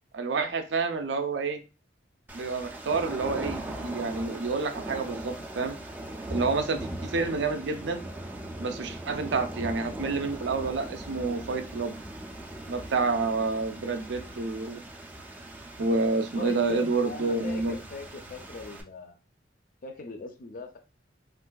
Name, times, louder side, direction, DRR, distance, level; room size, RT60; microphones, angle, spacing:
voice 1, 0.1-1.6 2.3-5.8 6.3-8.0 8.6-11.9 12.7-14.8 15.8-17.8, right 3 dB, 70° right, 7 dB, 0.5 m, -29 dB
sound 1, 2.3-18.8, right 1 dB, 10° right, 0.4 m, -40 dB
voice 2, 16.4-19.2 19.8-20.8, left 3 dB, 50° left, 6 dB, 0.4 m, -40 dB
3.6 x 2.4 x 2.2 m, 0.31 s
head